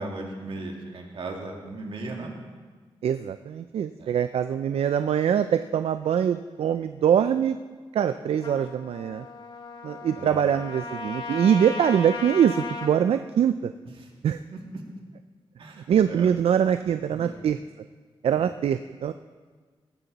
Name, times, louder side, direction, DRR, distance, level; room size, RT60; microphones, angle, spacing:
voice 1, 0.0-2.4 4.0-4.2 10.2-10.6 14.0-14.1 14.5-14.8 15.6-16.3 16.9-17.4, right 2 dB, 65° right, 0 dB, 2.3 m, -37 dB
voice 2, 3.0-7.6 7.9-9.3 9.8-13.7 14.2-14.4 15.9-17.6 18.2-19.1, right 8 dB, 85° right, 11 dB, 0.4 m, -23 dB
Trumpet, 8.4-12.9, left 3 dB, 55° left, 1.6 m, -36 dB
17.5 x 14.0 x 4.1 m, 1.5 s
wide cardioid pair, 170°, 10 cm